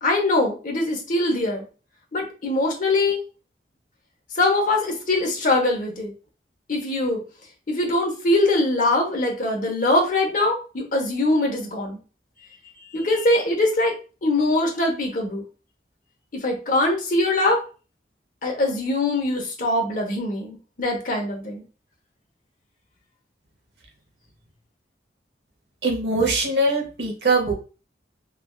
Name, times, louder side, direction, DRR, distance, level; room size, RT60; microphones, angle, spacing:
voice 1, 0.0-1.6 2.1-3.2 4.4-6.1 6.7-7.2 7.7-12.0 12.9-13.9 14.2-15.4 16.4-17.6 18.4-21.6, left 2 dB, 50° left, 2 dB, 0.8 m, -22 dB
voice 2, 25.8-27.5, right 2 dB, 65° right, 1 dB, 0.9 m, -22 dB
3.3 x 2.4 x 2.3 m, 0.34 s
head